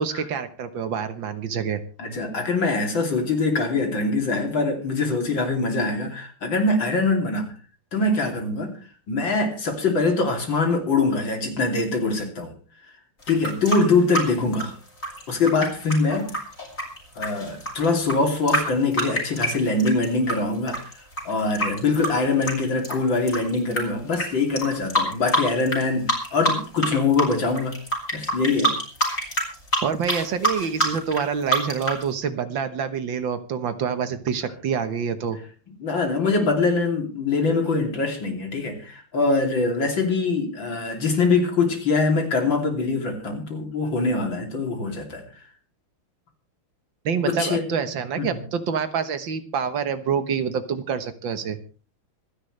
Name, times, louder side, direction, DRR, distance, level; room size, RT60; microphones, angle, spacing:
voice 1, 0.0-1.8 29.8-35.4 47.1-51.6, right 6 dB, 65° right, 10 dB, 1.9 m, -27 dB
voice 2, 2.0-7.5 7.9-8.8 9.1-12.5 13.3-14.8 15.3-16.4 17.2-20.8 21.3-27.8 28.1-28.8 35.7-45.2 47.3-47.7 48.2-48.4, left 3 dB, 65° left, 3 dB, 3.7 m, -23 dB
sound 1, 13.2-20.3 20.7-23.8 24.1-24.3 24.6-25.8 26.1-26.9 27.1-32.0, right 1 dB, 35° left, 5.5 m, -25 dB
26.0 x 10.5 x 3.3 m, 0.38 s
omnidirectional pair, 2.3 m